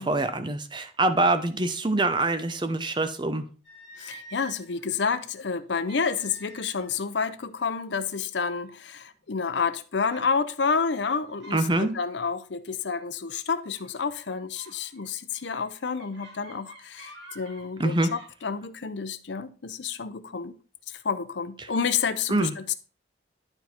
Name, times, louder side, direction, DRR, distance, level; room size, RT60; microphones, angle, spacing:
voice 1, 0.0-3.4 11.5-11.9 17.8-18.1 21.6-21.7 22.3-22.5, right 2 dB, 25° right, 0.7 m, -25 dB
sound 1, 3.6-4.8 5.9-7.0 7.3-7.6 8.3-8.4 8.9-9.3 10.1-10.3 10.9-11.7 12.0-12.3 13.8-14.0 14.5-18.3, right 2 dB, 75° right, 2.6 m, -49 dB
voice 2, 4.0-20.5 20.9-22.7, left 5 dB, 75° left, 0.7 m, -29 dB
11.5 x 3.9 x 4.3 m
head